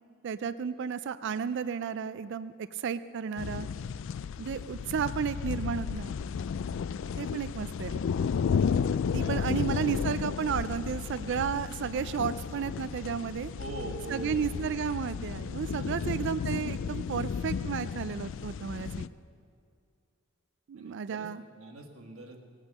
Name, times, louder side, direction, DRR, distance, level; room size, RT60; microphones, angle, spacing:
voice 1, 0.2-3.7 4.4-6.1 7.2-8.0 9.1-13.5 14.1-19.1 20.7-21.4, right 7 dB, 55° right, 14 dB, 0.3 m, -33 dB
sound 1, 3.4-19.1, left 6 dB, 60° left, 0.3 m, -33 dB
voice 2, 9.2-9.9 13.6-14.7 15.8-16.2 20.8-21.3 21.5-22.4, right 2 dB, 70° right, 3 dB, 1.6 m, -43 dB
19.0 x 8.9 x 6.5 m, 2.4 s
head